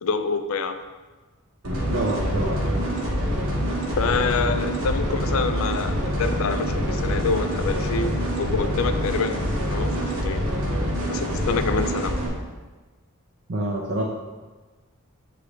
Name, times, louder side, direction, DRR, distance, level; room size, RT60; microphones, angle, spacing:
voice 1, 0.0-0.8 4.0-10.4 11.1-12.2, left 4 dB, 70° left, 9 dB, 0.4 m, -27 dB
sound 1, 1.6-12.3, equal, 80° right, 1.3 m, -25 dB
voice 2, 1.9-2.6 13.5-14.0, right 1 dB, 55° right, -4 dB, 0.8 m, -26 dB
7.6 x 3.8 x 3.2 m, 1.3 s
head